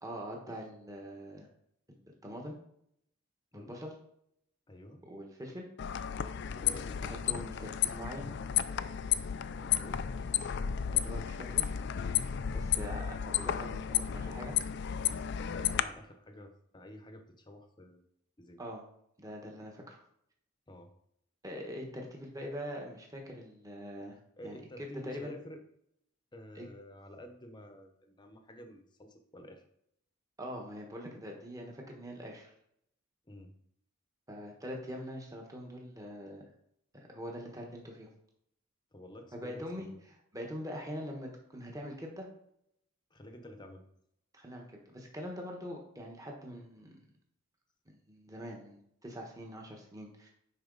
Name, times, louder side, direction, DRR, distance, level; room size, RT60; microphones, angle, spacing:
voice 1, 0.0-1.5 1.9-2.0 2.2-2.6 3.5-3.9 5.1-5.7 7.0-8.3 10.9-11.7 12.5-14.5 18.6-18.8 19.2-20.0 21.4-25.3 26.5-26.7 30.4-32.5 34.3-36.4 36.9-38.1 39.3-42.3 44.3-47.0 47.9-50.3, equal, 15° right, 0 dB, 1.3 m, -43 dB
voice 2, 4.7-5.0 6.4-7.0 9.6-10.0 15.3-18.0 18.4-18.6 20.7-20.9 24.4-25.6 26.3-29.6 33.3-33.5 38.9-40.0 43.1-43.8, left 1 dB, 20° left, 6 dB, 0.9 m, -50 dB
sound 1, 5.8-15.8, left 9 dB, 55° left, 0.4 m, -33 dB
10.0 x 4.1 x 4.0 m, 0.73 s
head